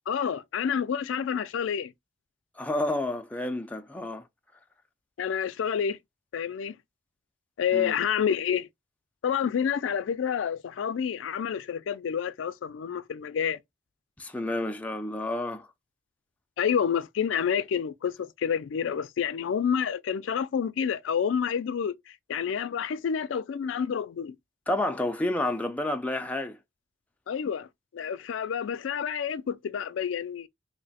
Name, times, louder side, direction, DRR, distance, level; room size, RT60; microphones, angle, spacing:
voice 1, 0.1-1.9 5.2-6.0 6.3-6.8 7.6-8.7 9.2-13.6 16.6-24.4 27.3-27.7 27.9-30.5, left 7 dB, 85° left, 0.4 m, -29 dB
voice 2, 2.6-4.2 7.7-7.9 14.2-15.7 24.7-26.6, left 1 dB, 10° left, 0.4 m, -30 dB
3.0 x 2.1 x 4.0 m
head